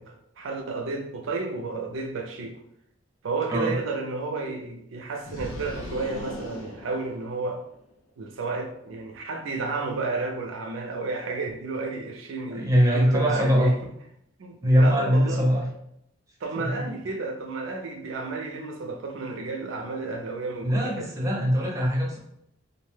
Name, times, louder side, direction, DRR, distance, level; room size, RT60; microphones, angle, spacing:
voice 1, 0.0-2.6 3.2-7.6 8.2-13.9 14.4-15.4 16.4-21.1, right 3 dB, 75° right, 4 dB, 0.4 m, -32 dB
sound 1, 5.2-7.7, left 1 dB, 85° left, 0.5 m, -39 dB
voice 2, 12.5-13.7 14.6-15.7 16.5-16.8 20.6-22.2, equal, 15° right, -2 dB, 0.5 m, -22 dB
2.6 x 2.1 x 3.2 m, 0.76 s
head